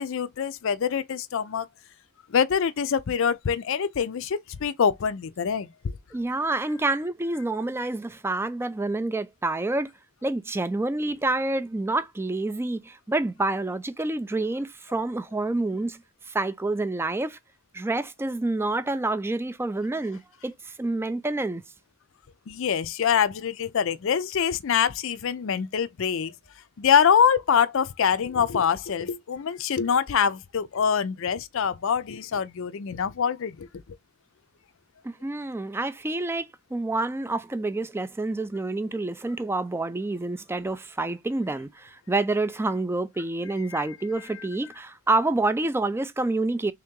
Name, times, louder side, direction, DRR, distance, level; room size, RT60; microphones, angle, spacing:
voice 1, 0.0-1.7 2.3-6.0 22.5-26.3 26.8-33.7 43.7-43.8 44.3-44.5, left 7 dB, 60° left, 0.4 m, -25 dB
voice 2, 6.1-9.9 10.2-16.0 16.3-17.4 17.7-21.6 35.0-46.7, right 2 dB, 10° right, 0.3 m, -28 dB
3.5 x 2.8 x 3.5 m
head